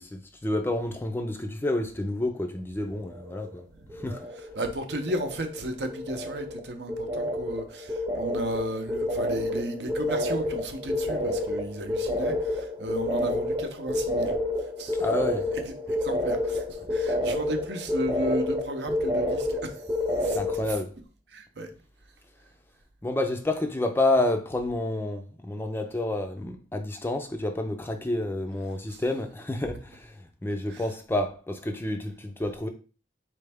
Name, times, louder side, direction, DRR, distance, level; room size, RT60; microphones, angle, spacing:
voice 1, 0.0-3.6 3.9-4.3 15.0-15.5 20.3-20.9 23.0-32.7, left 2 dB, 10° left, 0.4 m, -29 dB
sound 1, 3.0-3.6 3.9-4.6 4.9-20.7, left 1 dB, 20° right, 0.7 m, -29 dB
voice 2, 4.6-15.0 15.9-19.8 20.2-20.4 21.3-21.7 28.9-29.0 30.7-30.8, right 1 dB, 70° right, 0.7 m, -34 dB
4.2 x 3.3 x 3.4 m
head